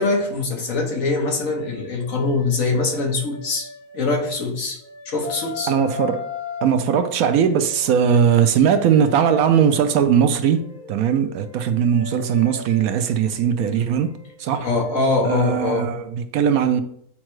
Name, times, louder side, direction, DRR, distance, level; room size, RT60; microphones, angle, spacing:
voice 1, 0.0-3.7 3.9-4.8 5.0-5.7 14.6-15.9, left 3 dB, 60° left, 1.5 m, -23 dB
sound 1, 0.8-4.4 4.8-10.0 10.5-16.0, left 5 dB, 85° left, 1.8 m, -38 dB
voice 2, 5.7-6.3 6.6-14.1 14.4-14.7 15.2-16.8, right 8 dB, 75° right, 1.0 m, -19 dB
8.7 x 4.4 x 3.1 m
omnidirectional pair, 1.6 m